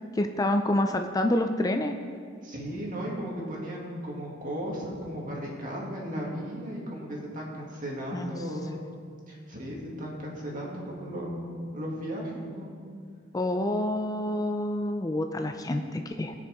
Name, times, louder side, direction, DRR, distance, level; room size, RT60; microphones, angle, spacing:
voice 1, 0.1-2.0 8.1-8.4 13.3-16.3, left 1 dB, 20° left, 6 dB, 0.4 m, -27 dB
voice 2, 2.4-8.8 9.3-11.4 11.7-12.7, equal, 45° right, -3 dB, 2.3 m, -35 dB
19.5 x 6.6 x 3.6 m, 2.2 s
head